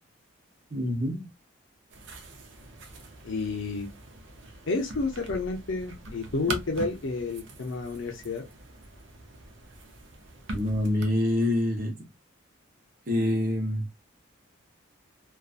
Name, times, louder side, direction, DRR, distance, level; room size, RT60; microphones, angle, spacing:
voice 1, 0.7-1.3 10.5-11.9 13.1-13.9, left 1 dB, 45° right, 0.8 m, -26 dB
sound 1, 1.9-11.0, right 2 dB, 65° right, 0.6 m, -42 dB
voice 2, 3.2-3.9 4.7-8.4, left 3 dB, 70° left, 0.5 m, -30 dB
2.5 x 2.3 x 2.3 m
head